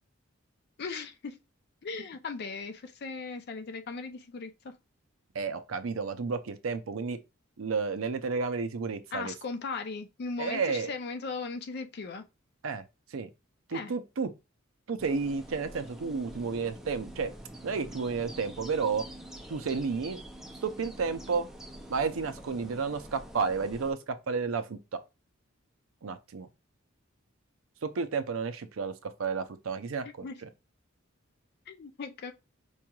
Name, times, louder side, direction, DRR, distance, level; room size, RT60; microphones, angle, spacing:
voice 1, 0.8-1.4 1.8-4.8 9.1-12.3 13.7-13.9 30.2-30.4 31.7-32.3, left 4 dB, 50° left, 0.4 m, -38 dB
voice 2, 5.3-7.2 7.6-9.3 10.4-10.9 12.6-12.8 13.1-13.3 13.7-14.3 14.9-17.3 17.6-19.0 19.5-20.2 20.6-21.5 21.9-24.8 26.0-26.5 27.8-30.5, right 5 dB, 75° right, 0.5 m, -32 dB
sound 1, 15.0-23.9, right 1 dB, ahead, 0.4 m, -46 dB
4.7 x 3.0 x 2.3 m
head